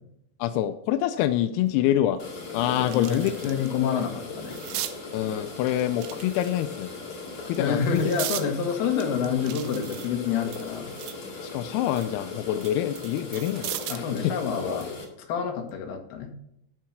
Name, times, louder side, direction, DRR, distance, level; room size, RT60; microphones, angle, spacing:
voice 1, 0.4-2.2 2.5-3.3 5.1-6.9 7.5-8.0 11.4-14.3, left 12 dB, 85° left, 9 dB, 2.4 m, -26 dB
sound 1, 1.7-1.8 2.3-3.7 4.0-5.0 5.9-6.8 7.4-8.5 9.0-11.3 11.7-14.1 15.5-15.7, right 12 dB, 75° right, 2.5 m, -37 dB
sound 2, 2.2-15.1, left 3 dB, 45° left, 2.2 m, -38 dB
voice 2, 2.8-4.6 7.6-10.9 13.9-14.9 15.3-16.3, left 7 dB, 70° left, 4 dB, 2.9 m, -28 dB
12.0 x 4.6 x 5.9 m, 0.76 s
omnidirectional pair, 5.1 m